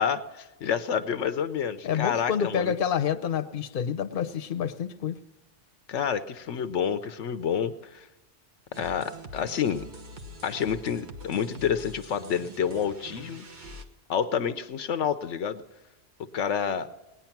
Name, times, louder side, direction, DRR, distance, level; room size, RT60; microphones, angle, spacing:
voice 1, 0.0-2.7 5.9-8.1 8.7-9.9 10.4-13.5 14.1-15.6 16.3-16.9, left 7 dB, 80° left, 11 dB, 1.0 m, -28 dB
voice 2, 1.8-5.2, left 8 dB, 50° left, 9 dB, 0.9 m, -28 dB
sound 1, 8.7-13.8, right 1 dB, 40° right, 1.4 m, -44 dB
19.5 x 9.8 x 5.9 m, 1.1 s
omnidirectional pair, 1.2 m